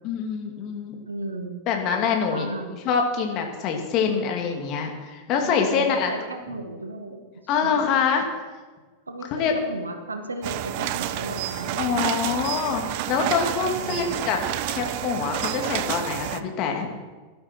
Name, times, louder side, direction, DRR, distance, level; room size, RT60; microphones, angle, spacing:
voice 1, 0.0-0.9 1.7-2.5 2.8-6.1 7.5-8.3 9.3-9.5 11.8-14.4 14.7-16.9, left 6 dB, 40° left, 3 dB, 2.4 m, -25 dB
voice 2, 1.1-1.6 2.3-2.8 5.4-7.3 7.6-7.7 8.2-8.3 9.1-11.9 12.4-12.5 13.5-14.3, right 2 dB, 80° right, 6 dB, 1.6 m, -35 dB
sound 1, 10.4-16.4, right 13 dB, 45° right, 0.6 m, -29 dB
18.5 x 12.0 x 4.6 m, 1.3 s
figure-of-eight pair, 90°, 0 cm